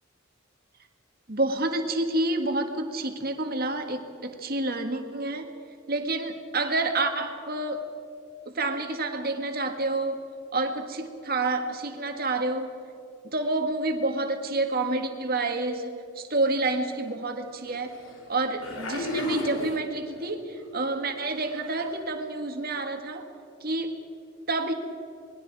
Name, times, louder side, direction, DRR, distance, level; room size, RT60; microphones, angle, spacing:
voice 1, 1.3-5.5 5.9-7.9 8.5-10.2 10.5-12.7 13.3-17.9 18.3-23.3 23.6-24.0 24.5-24.7, right 2 dB, 45° right, 5 dB, 1.9 m, -28 dB
sound 1, 16.7-16.9 17.7-18.2 18.6-20.2 20.6-20.9 21.2-21.9 22.7-22.8, left 1 dB, 65° left, 2.8 m, -34 dB
27.0 x 21.0 x 4.8 m, 2.6 s
head